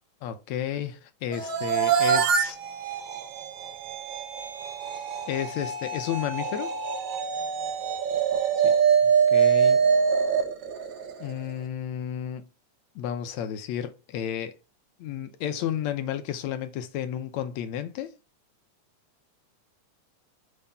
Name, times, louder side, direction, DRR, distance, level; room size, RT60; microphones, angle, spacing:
voice 1, 0.2-1.0 1.2-2.6 5.3-6.7 8.6-8.8 9.3-9.8 11.2-12.4 13.0-14.6 15.0-18.1, left 10 dB, 75° left, 2.0 m, -32 dB
sound 1, 1.3-11.5, right 7 dB, 70° right, 2.4 m, -24 dB
6.6 x 3.6 x 5.5 m
omnidirectional pair, 3.5 m